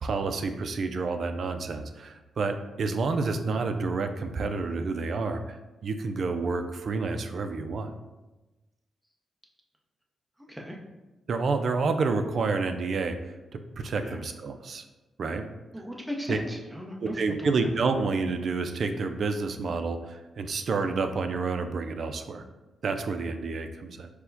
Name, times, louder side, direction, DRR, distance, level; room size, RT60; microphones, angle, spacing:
voice 1, 0.0-5.6 5.8-7.9 11.3-13.2 13.8-14.8 15.2-15.4 16.3-16.4 17.0-22.4 22.8-24.1, right 4 dB, 60° right, 7 dB, 0.4 m, -29 dB
voice 2, 10.5-10.8 14.0-14.2 15.7-17.7, equal, 5° right, 0 dB, 0.7 m, -37 dB
4.5 x 2.2 x 3.9 m, 1.1 s
cardioid pair, 85°, 0 cm